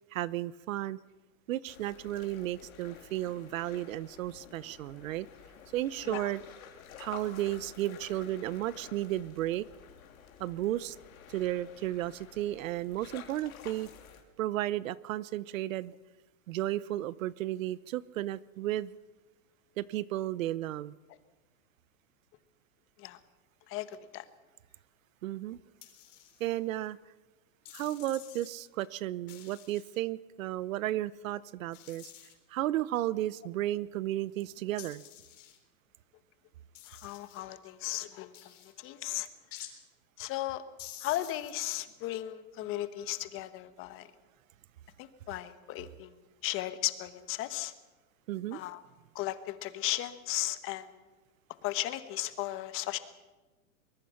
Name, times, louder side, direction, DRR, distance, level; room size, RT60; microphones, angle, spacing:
voice 1, 0.1-1.0 1.5-5.3 5.7-6.4 7.0-9.7 10.4-11.0 11.3-13.9 14.4-15.9 16.5-19.0 19.8-20.9 25.2-25.6 26.4-27.0 27.7-32.1 32.5-35.0 48.3-48.6, right 14 dB, 70° right, 0.8 m, -33 dB
sound 1, 1.7-14.2, left 8 dB, 90° left, 3.5 m, -52 dB
voice 2, 23.7-24.2 36.9-38.3 38.8-39.3 40.2-40.6 41.0-44.1 45.0-46.1 46.4-47.7 48.5-48.8 49.1-50.9 51.6-53.0, left 15 dB, 30° left, 1.3 m, -35 dB
sound 2, 25.8-26.6 27.6-28.5 29.3-30.0 31.7-32.3 34.8-35.6 36.7-37.4 38.3-38.7 39.5-39.7 40.8-41.5, left 12 dB, 60° left, 4.0 m, -49 dB
23.5 x 21.0 x 5.9 m
supercardioid pair, 150°, 41 cm